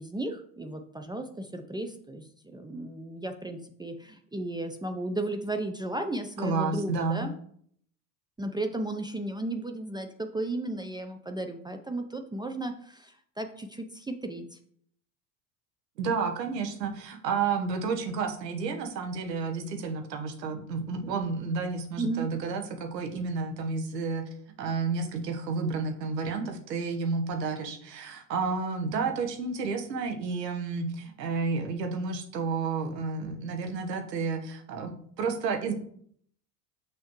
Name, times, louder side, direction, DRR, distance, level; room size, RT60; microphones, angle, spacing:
voice 1, 0.0-7.3 8.4-14.6 22.0-22.3, right 2 dB, 10° right, 5 dB, 0.6 m, -34 dB
voice 2, 6.4-7.3 16.0-24.2 24.6-34.9 35.2-35.7, right 4 dB, 85° right, 5 dB, 1.3 m, -31 dB
6.6 x 6.3 x 3.1 m, 0.63 s
hypercardioid pair, 80°, 48 cm